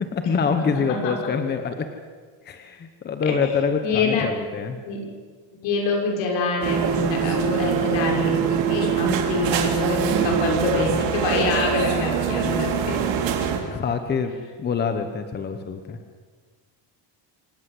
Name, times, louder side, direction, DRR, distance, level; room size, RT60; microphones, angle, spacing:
voice 1, 0.0-1.9 2.4-4.8 12.3-12.6 13.7-16.0, left 5 dB, 20° left, 7 dB, 1.1 m, -26 dB
voice 2, 0.6-1.3 3.2-3.3 3.8-4.3 4.9-5.1 5.6-13.1, left 4 dB, 65° left, 1 dB, 6.6 m, -26 dB
sound 1, 6.6-13.6, right 7 dB, 65° right, 3.9 m, -23 dB
27.0 x 18.0 x 7.9 m, 1.5 s
cardioid pair, 180°, 48 cm